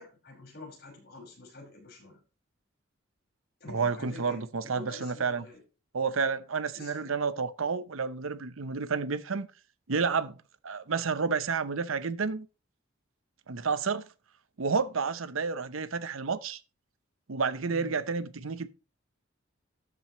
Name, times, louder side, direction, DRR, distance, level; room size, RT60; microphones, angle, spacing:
voice 1, 0.0-2.2 3.6-5.6 6.7-7.1 17.7-18.0, left 2 dB, 50° left, 5.6 m, -47 dB
voice 2, 3.7-5.4 5.9-9.5 9.9-10.4 10.6-12.5 13.5-14.1 14.6-16.6 17.3-18.7, right 5 dB, 90° right, 0.8 m, -30 dB
13.0 x 7.6 x 3.1 m
head